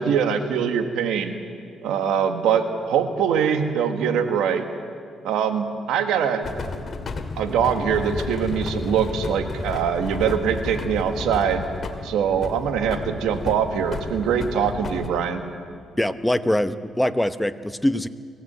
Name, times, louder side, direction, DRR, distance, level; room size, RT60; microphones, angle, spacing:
voice 1, 0.0-1.3 1.8-4.6 5.2-6.5 7.4-11.6 12.0-15.4, right 7 dB, 90° right, 6 dB, 1.6 m, -23 dB
sound 1, 6.4-15.1, left 4 dB, 40° left, 2.2 m, -32 dB
voice 2, 16.0-18.1, left 1 dB, 5° left, 10 dB, 0.9 m, -23 dB
24.5 x 15.5 x 8.0 m, 2.4 s
cardioid pair, 90°, 0 cm